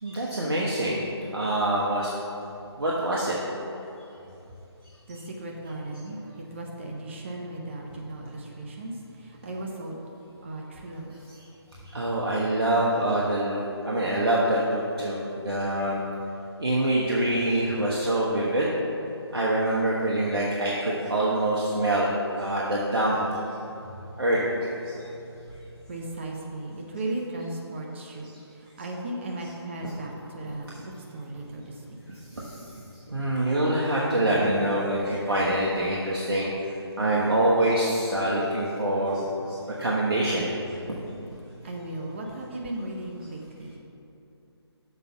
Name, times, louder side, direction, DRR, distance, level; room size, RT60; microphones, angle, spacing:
voice 1, 0.0-1.0 1.3-2.1 2.8-3.4 11.9-16.0 16.6-18.7 19.3-23.4 24.2-24.4 24.8-24.9 32.1-32.6 33.1-40.5, right 1 dB, 65° right, -6 dB, 1.2 m, -25 dB
voice 2, 5.1-10.0 10.4-11.8 23.6-24.2 25.0-32.0 32.2-32.4 32.7-32.8 40.7-40.9 41.6-43.8, right 1 dB, 25° right, -1 dB, 0.7 m, -37 dB
6.8 x 5.3 x 5.7 m, 2.9 s
figure-of-eight pair, 150°, 14 cm